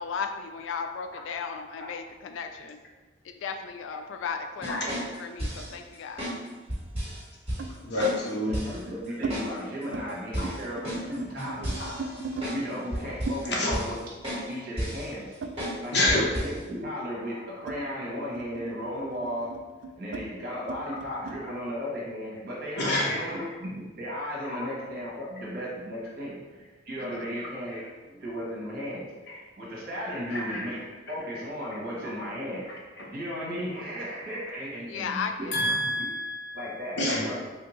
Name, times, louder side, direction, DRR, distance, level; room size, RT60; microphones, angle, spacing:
voice 1, 0.0-2.8 3.2-6.4 27.0-27.3 34.9-35.8, left 6 dB, 85° left, 7 dB, 0.3 m, -36 dB
sound 1, 4.6-5.7 6.2-6.4 6.7-7.2 7.5-7.6 8.0-8.2 8.5-8.8 9.3-9.5 9.8-9.9 10.3-12.6 12.9-13.4 13.7-14.0 14.2-14.5 14.8-15.1 15.6-15.8 16.1-16.6, equal, 30° right, 1.4 m, -33 dB
sound 2, 5.2-6.3 7.6-7.8 8.6-9.4 9.7-10.1 10.3-12.5 13.3-16.1 16.4-21.4, right 3 dB, 70° right, 0.3 m, -39 dB
voice 2, 7.8-8.6 10.4-10.5 11.8-12.0 13.6-13.8 15.9-16.2 21.1-21.2 22.8-23.3 24.6-24.7 30.3-30.6 35.5-36.6 37.0-37.3, left 1 dB, 60° left, -3 dB, 0.8 m, -27 dB
voice 3, 8.4-11.8 12.5-15.4 15.8-19.5 20.0-27.8 28.1-29.0 29.3-30.8 31.1-32.6 32.9-36.0 36.5-37.4, equal, 50° right, -5 dB, 1.0 m, -35 dB
3.4 x 2.5 x 3.0 m, 1.2 s
head